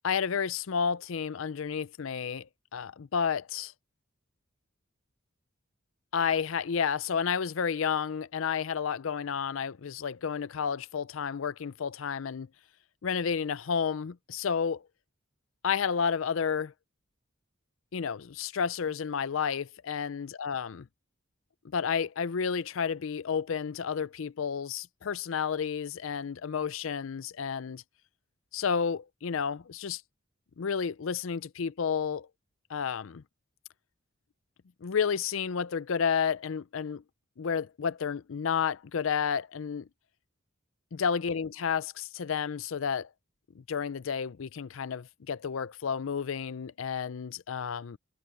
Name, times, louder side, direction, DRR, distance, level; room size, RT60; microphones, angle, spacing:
voice 1, 0.0-3.7 6.1-12.5 13.0-14.8 15.6-16.7 17.9-20.9 21.7-27.8 28.5-30.0 30.6-32.3 32.7-33.2 34.8-37.0 37.4-39.9 41.0-43.1 43.6-48.0, left 6 dB, 70° left, 0.5 m, -31 dB
head